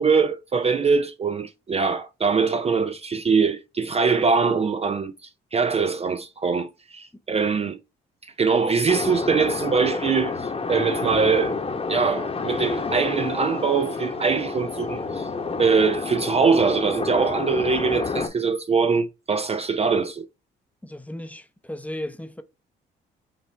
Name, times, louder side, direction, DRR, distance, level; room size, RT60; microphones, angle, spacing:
voice 1, 0.0-7.8 8.2-11.6 11.9-15.3 15.6-20.3, right 5 dB, 30° right, 0.4 m, -23 dB
sound 1, 8.9-18.3, left 4 dB, 30° left, 1.0 m, -29 dB
voice 2, 20.8-22.4, left 1 dB, 5° left, 0.7 m, -35 dB
5.8 x 2.4 x 3.2 m
supercardioid pair, 65°, 21 cm